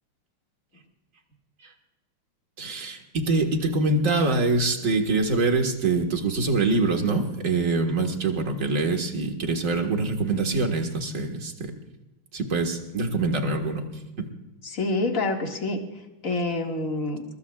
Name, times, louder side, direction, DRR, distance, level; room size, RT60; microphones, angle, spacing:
voice 1, 2.6-11.7 12.3-13.8 14.2-14.3, right 3 dB, 40° right, 4 dB, 2.0 m, -24 dB
voice 2, 14.6-15.8 16.2-17.2, left 2 dB, 40° left, 2 dB, 2.3 m, -27 dB
22.5 x 22.0 x 2.4 m, 1.0 s
omnidirectional pair, 2.3 m